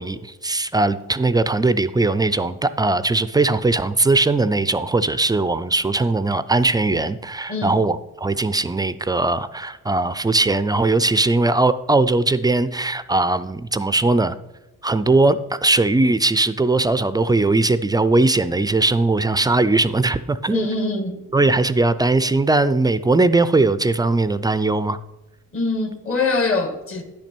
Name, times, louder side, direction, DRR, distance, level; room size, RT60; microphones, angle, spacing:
voice 1, 0.0-14.4 14.8-20.7 21.3-25.0, right 2 dB, 15° right, 0.3 m, -19 dB
voice 2, 20.5-21.2 25.5-27.0, left 3 dB, 45° left, 1.4 m, -23 dB
10.0 x 6.0 x 4.4 m
cardioid pair, 90°, 30 cm